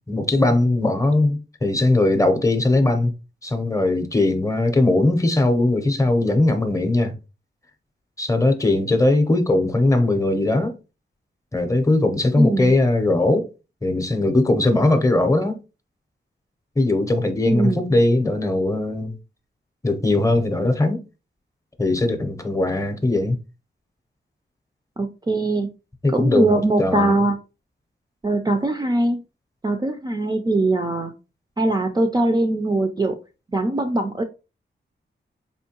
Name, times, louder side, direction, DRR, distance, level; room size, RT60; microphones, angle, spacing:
voice 1, 0.1-3.1 3.4-7.1 8.2-10.8 11.5-13.5 13.8-15.6 16.8-19.2 19.8-21.0 21.8-23.4 26.0-27.2, left 2 dB, 15° left, 0.6 m, -19 dB
voice 2, 12.4-12.8 17.4-18.0 25.0-25.7 26.1-27.4 28.2-29.2 29.6-31.1 31.6-33.2 33.5-34.2, right 2 dB, 20° right, 0.4 m, -21 dB
4.4 x 3.0 x 2.9 m
wide cardioid pair, 140°, 19 cm